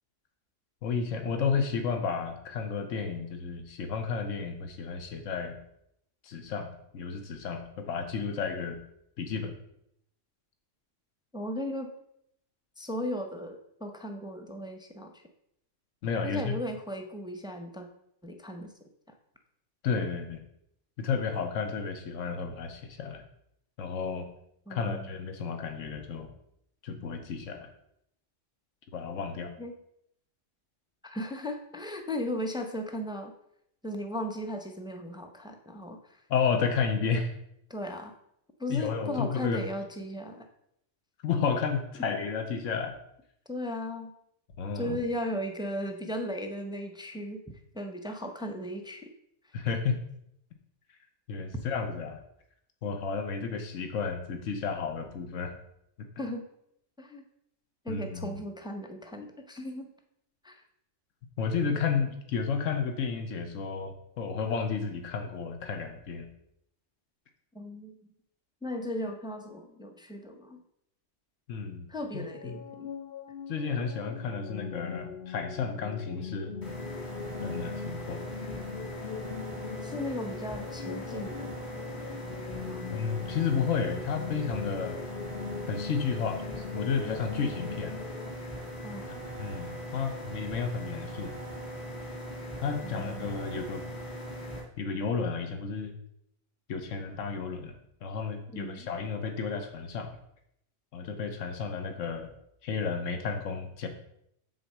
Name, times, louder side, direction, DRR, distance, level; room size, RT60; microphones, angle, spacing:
voice 1, 0.8-5.6 6.2-8.8 9.2-9.5 16.0-16.6 19.8-20.4 21.0-23.2 23.8-24.3 24.7-26.3 26.8-27.7 28.9-29.5 36.3-37.3 38.7-39.6 41.2-43.0 44.6-45.0 49.5-50.0 51.3-52.2 52.8-55.5 57.9-58.4 61.4-66.3 71.5-71.9 72.1-72.6 73.5-76.5 77.4-78.2 82.9-85.0 85.7-88.0 89.4-91.3 92.6-93.8 94.8-95.9 96.7-97.7 98.0-100.2 100.9-102.3 102.6-103.9, left 5 dB, 80° left, 5 dB, 1.3 m, -32 dB
voice 2, 11.3-11.9 12.8-15.1 16.2-17.9 18.2-18.7 24.7-25.2 29.6-29.7 31.0-33.3 33.8-36.2 37.7-38.1 38.6-40.5 43.5-44.1 44.7-47.4 47.7-49.1 56.2-56.4 57.0-57.2 57.8-59.9 60.4-60.6 67.5-68.0 68.6-70.6 71.9-72.9 79.8-81.5 82.7-82.9 88.8-89.2 92.8-93.4 98.5-98.9, left 1 dB, 5° right, 5 dB, 0.6 m, -36 dB
sound 1, 72.1-88.3, left 6 dB, 60° left, 0.7 m, -41 dB
sound 2, 76.6-94.6, equal, 35° left, 2.1 m, -40 dB
7.9 x 4.2 x 6.6 m, 0.75 s
omnidirectional pair, 1.3 m